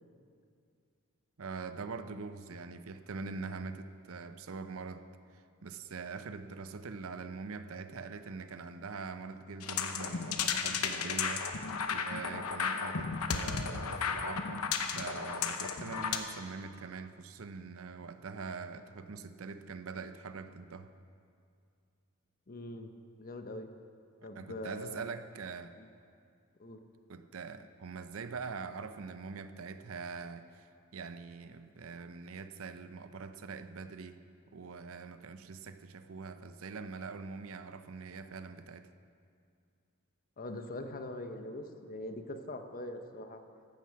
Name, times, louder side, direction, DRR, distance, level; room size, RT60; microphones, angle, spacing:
voice 1, 1.4-5.0 5.3-11.6 11.9-14.6 14.9-20.9 24.3-25.7 27.1-30.7 30.9-34.2 34.5-38.9, right 4 dB, 65° right, 10 dB, 0.6 m, -43 dB
sound 1, 9.6-16.2, left 6 dB, 90° left, 0.9 m, -34 dB
voice 2, 22.5-22.9 23.2-23.7 24.2-25.1 25.8-25.9 26.6-26.8 40.4-43.4, left 1 dB, 40° left, 7 dB, 0.9 m, -42 dB
14.5 x 11.5 x 4.7 m, 2.3 s
head